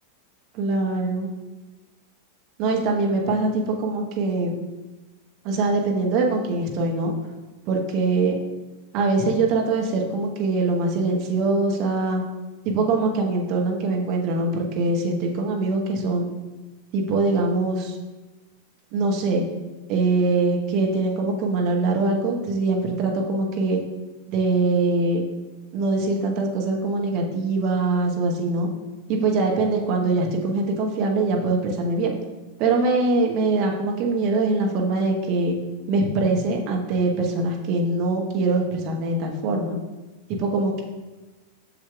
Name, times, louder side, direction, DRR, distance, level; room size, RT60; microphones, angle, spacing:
voice 1, 0.5-1.3 2.6-4.5 5.4-7.1 7.7-8.4 8.9-12.2 12.6-16.3 16.9-17.9 18.9-19.4 19.9-23.8 24.3-25.2 25.7-28.7 29.1-32.1 32.6-35.5 35.9-39.8 40.3-40.8, right 3 dB, 40° right, 1 dB, 1.1 m, -23 dB
7.2 x 6.4 x 2.4 m, 1.2 s
figure-of-eight pair, 90°, 0 cm